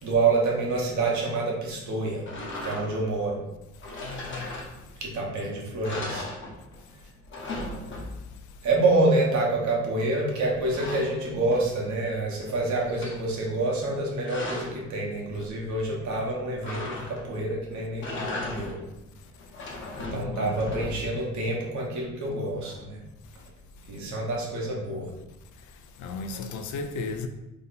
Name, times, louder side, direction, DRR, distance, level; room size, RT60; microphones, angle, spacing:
voice 1, 0.0-2.2 2.6-3.4 5.0-6.3 8.6-18.8 20.1-23.0 23.9-25.1, right 2 dB, 70° right, 1.0 m, -27 dB
sound 1, 2.2-3.1 3.8-5.1 5.4-5.5 5.8-6.9 7.1-8.4 10.1-11.9 12.3-13.2 13.9-14.8 16.6-17.4 17.9-18.9 19.4-21.2, left 2 dB, 40° left, 0.8 m, -37 dB
voice 2, 4.0-4.5 20.1-20.8 26.0-27.3, left 4 dB, 75° left, 0.4 m, -34 dB
2.8 x 2.1 x 3.9 m
cardioid pair, 90°, 30 cm